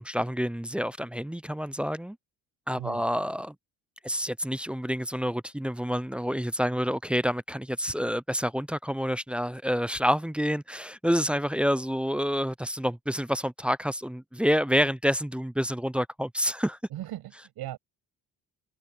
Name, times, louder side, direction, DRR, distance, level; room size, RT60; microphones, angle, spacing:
voice 1, 0.0-2.2 2.7-3.5 4.0-16.8, equal, 5° right, 0.3 m, -28 dB
voice 2, 2.8-3.1 16.9-17.8, right 14 dB, 85° right, 6.5 m, -38 dB
cardioid pair, 105°, 37 cm